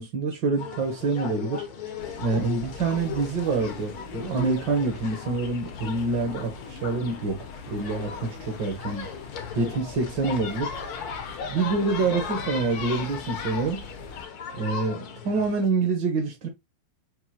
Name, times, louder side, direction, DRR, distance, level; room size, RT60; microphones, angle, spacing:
voice 1, 0.0-1.6 2.2-9.1 9.5-10.7 11.4-13.8 14.5-16.5, right 3 dB, 60° right, 1.6 m, -26 dB
sound 1, 0.6-15.7, left 6 dB, 60° left, 1.1 m, -37 dB
sound 2, 2.0-14.3, left 4 dB, 85° left, 1.9 m, -42 dB
6.1 x 2.6 x 2.8 m
omnidirectional pair, 2.3 m